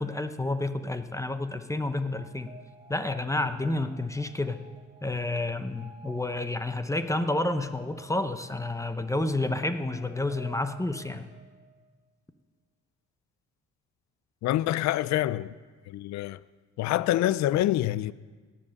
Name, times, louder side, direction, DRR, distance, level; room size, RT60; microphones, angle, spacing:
voice 1, 0.0-2.5 2.9-4.6 5.0-11.3, left 2 dB, 10° left, 0.7 m, -30 dB
sound 1, 2.1-11.9, right 2 dB, 15° right, 1.4 m, -54 dB
voice 2, 14.4-15.5 15.9-16.4 16.8-18.1, left 14 dB, 65° left, 0.4 m, -26 dB
17.5 x 7.5 x 6.5 m
cardioid pair, 90°, 30 cm